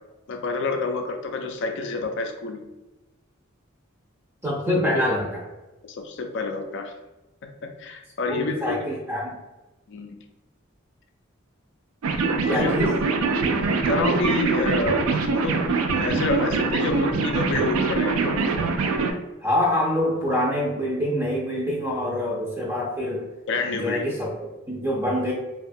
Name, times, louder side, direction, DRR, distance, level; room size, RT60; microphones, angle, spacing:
voice 1, 0.3-2.6 5.9-6.9 7.8-8.7 9.9-10.1 12.5-12.7 13.8-15.0 15.3-18.4 23.5-24.0, left 3 dB, 60° left, 5 dB, 0.4 m, -28 dB
voice 2, 4.4-5.5 8.3-9.4 12.5-12.9 19.4-23.3 23.7-24.3 24.7-25.3, left 1 dB, 10° right, -4 dB, 0.4 m, -25 dB
sound 1, 12.0-19.1, right 4 dB, 80° right, 0.3 m, -23 dB
2.7 x 2.2 x 2.5 m, 1.0 s
head